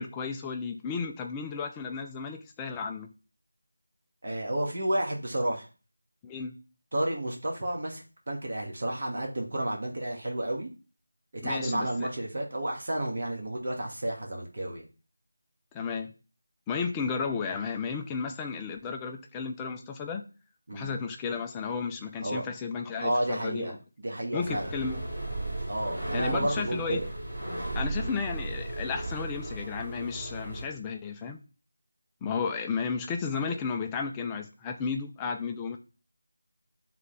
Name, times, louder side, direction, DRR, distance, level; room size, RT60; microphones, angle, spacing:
voice 1, 0.0-3.1 6.2-6.6 11.4-12.1 15.7-16.1 16.7-20.2 20.7-23.8 24.3-25.0 26.1-27.0 27.8-31.4 32.2-35.8, left 5 dB, 10° left, 3 dB, 0.4 m, -33 dB
voice 2, 4.2-5.7 6.9-10.7 11.4-14.8 20.7-20.9 22.2-22.4 23.0-24.7 25.7-27.1 28.0-28.1, right 1 dB, 45° right, 1 dB, 1.9 m, -31 dB
sound 1, 24.4-30.6, right 2 dB, 20° right, 3.3 m, -35 dB
10.5 x 3.8 x 3.3 m, 0.34 s
figure-of-eight pair, 175°, 0 cm